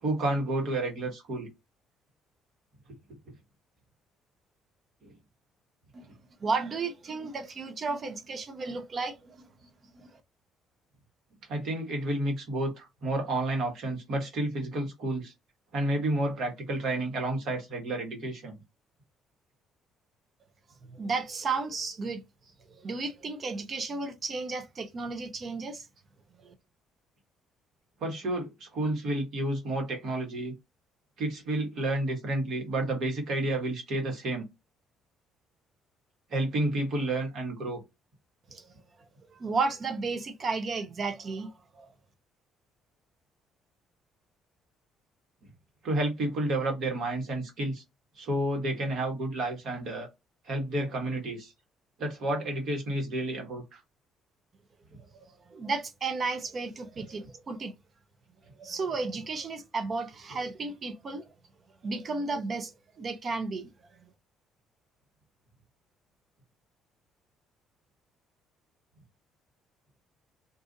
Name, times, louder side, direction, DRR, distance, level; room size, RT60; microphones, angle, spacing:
voice 1, 0.0-1.5 5.0-5.1 6.0-6.1 11.5-15.3 15.7-18.5 28.0-30.5 31.2-34.4 36.3-37.8 45.8-47.8 48.2-50.1 50.4-51.5 52.0-53.8, right 1 dB, 65° right, 1.5 m, -30 dB
voice 2, 6.4-9.5 9.9-10.1 20.9-22.2 22.7-25.9 26.4-26.5 38.5-38.7 39.3-41.9 55.1-57.7 58.6-61.3 61.8-63.7, right 4 dB, 45° right, 0.8 m, -33 dB
2.7 x 2.5 x 3.7 m
hypercardioid pair, 60°, 0 cm